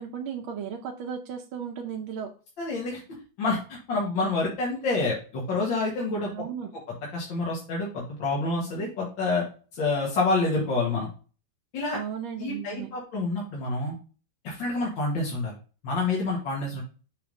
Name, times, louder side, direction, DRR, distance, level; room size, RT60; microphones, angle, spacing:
voice 1, 0.0-2.3 6.3-6.7 11.9-12.9, right 8 dB, 85° right, 2 dB, 1.6 m, -35 dB
voice 2, 2.6-3.0 3.4-6.3 7.1-9.5 9.7-11.1 11.7-12.0 12.4-13.9 14.4-15.5 15.8-16.8, left 3 dB, 70° left, -3 dB, 2.3 m, -28 dB
6.9 x 3.5 x 5.1 m, 0.36 s
omnidirectional pair, 2.2 m